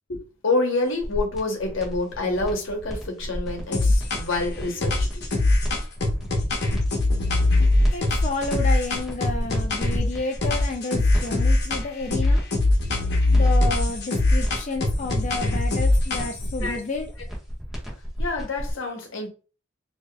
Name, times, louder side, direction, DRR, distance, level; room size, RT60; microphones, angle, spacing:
voice 1, 0.1-5.2 16.6-16.8 18.2-19.3, left 2 dB, 85° left, 1.0 m, -27 dB
sound 1, 0.9-18.7, equal, ahead, 1.2 m, -33 dB
sound 2, 3.7-4.4 4.8-10.1 10.4-11.8 12.1-16.5, left 2 dB, 60° left, 1.0 m, -21 dB
voice 2, 7.9-12.4 13.3-17.1, left 3 dB, 35° left, 0.4 m, -31 dB
4.8 x 2.7 x 2.3 m
head